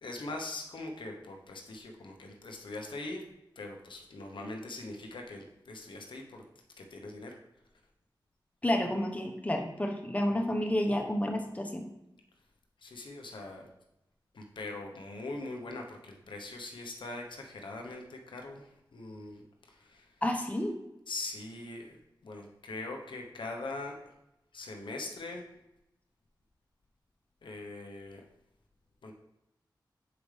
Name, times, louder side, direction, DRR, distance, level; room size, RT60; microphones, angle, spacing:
voice 1, 0.0-3.2 3.6-6.4 6.8-7.3 12.8-13.7 14.3-20.1 21.1-22.0 22.2-24.0 24.5-25.4 27.4-28.2 29.0-29.1, left 2 dB, 85° left, 2 dB, 0.9 m, -42 dB
voice 2, 8.6-11.9 20.2-20.7, left 1 dB, 20° left, 3 dB, 1.1 m, -30 dB
6.8 x 5.0 x 3.3 m, 0.89 s
cardioid pair, 55°, 8 cm